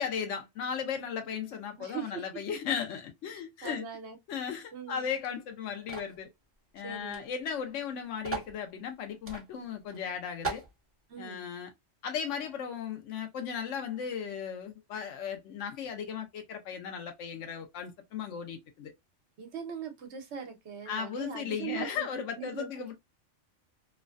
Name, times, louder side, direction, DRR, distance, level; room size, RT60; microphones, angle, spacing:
voice 1, 0.0-3.8 4.3-6.3 6.7-10.6 11.2-11.7 12.0-18.9 20.9-22.9, left 7 dB, 80° left, 1.0 m, -36 dB
voice 2, 1.8-2.6 3.6-4.2 4.7-5.1 6.8-7.2 11.1-11.5 19.4-22.9, right 7 dB, 70° right, 1.2 m, -41 dB
sound 1, 5.9-6.2 7.1-7.2 7.5-7.6 8.2-8.5 9.3-9.4 9.9-10.0 10.4-10.7, right 4 dB, 15° right, 0.9 m, -36 dB
3.1 x 2.2 x 2.4 m
omnidirectional pair, 1.2 m